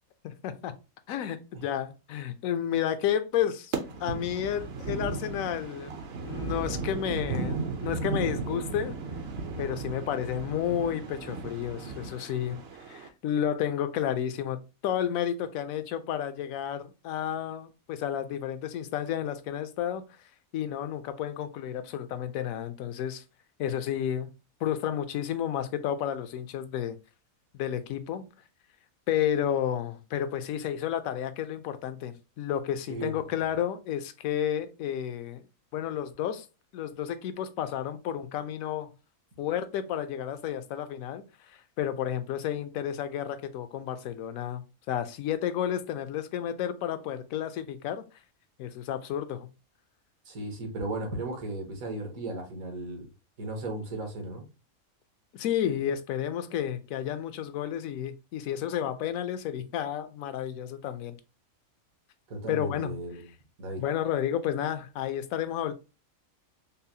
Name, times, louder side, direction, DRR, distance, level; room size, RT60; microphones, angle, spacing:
voice 1, 0.2-0.7 1.1-3.7 4.0-5.9 6.2-8.9 9.6-12.6 12.9-14.6 14.8-20.0 20.5-23.2 23.6-24.3 24.6-27.0 27.5-28.2 29.1-35.4 35.7-36.5 36.7-38.9 39.4-41.2 41.8-48.0 48.6-49.5 55.3-61.2 62.5-62.9 63.8-65.7, left 10 dB, 75° left, 1.0 m, -31 dB
sound 1, 3.7-13.1, right 4 dB, 55° right, 0.8 m, -35 dB
voice 2, 50.2-53.1 53.4-54.4 62.3-63.3 63.6-63.8, right 2 dB, 75° right, 1.5 m, -35 dB
5.5 x 2.0 x 2.7 m
omnidirectional pair, 1.5 m